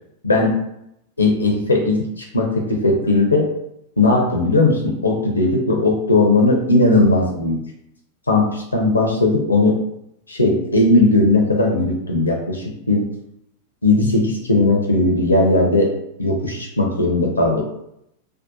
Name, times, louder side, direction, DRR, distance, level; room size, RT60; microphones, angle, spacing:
voice 1, 0.2-0.5 1.2-3.5 4.0-7.6 8.3-9.8 10.3-13.0 13.8-15.9 16.2-17.6, left 2 dB, 80° left, 0 dB, 0.4 m, -17 dB
2.7 x 2.1 x 2.5 m, 0.79 s
figure-of-eight pair, 90°, 0 cm